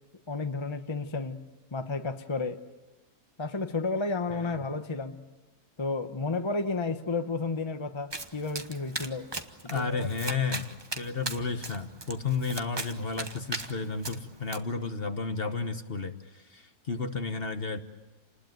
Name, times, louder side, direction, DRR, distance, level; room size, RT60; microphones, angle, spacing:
voice 1, 0.3-2.6 3.4-5.3 5.8-9.3 9.7-10.1, left 3 dB, 20° left, 0.9 m, -32 dB
Domestic sounds home sounds, 8.1-14.6, right 2 dB, 20° right, 1.0 m, -39 dB
voice 2, 9.7-17.8, left 4 dB, 40° left, 1.3 m, -32 dB
28.5 x 20.0 x 9.2 m
omnidirectional pair, 1.7 m